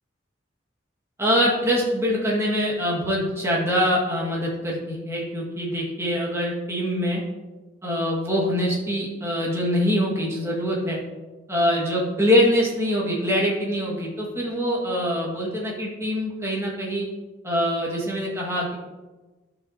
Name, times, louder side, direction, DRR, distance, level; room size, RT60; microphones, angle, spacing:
voice 1, 1.2-7.2 7.8-11.0 11.5-17.1 17.4-18.7, equal, 15° right, -4 dB, 1.8 m, -24 dB
11.0 x 6.4 x 2.8 m, 1.2 s
head